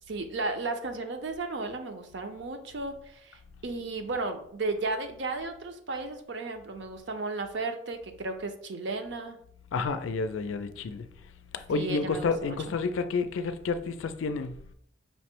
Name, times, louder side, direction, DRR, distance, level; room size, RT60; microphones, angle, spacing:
voice 1, 0.1-9.4 11.7-12.6, right 3 dB, 65° right, 0.6 m, -34 dB
voice 2, 9.7-11.1 11.5-14.6, left 4 dB, 90° left, 0.4 m, -30 dB
5.5 x 2.1 x 4.3 m
head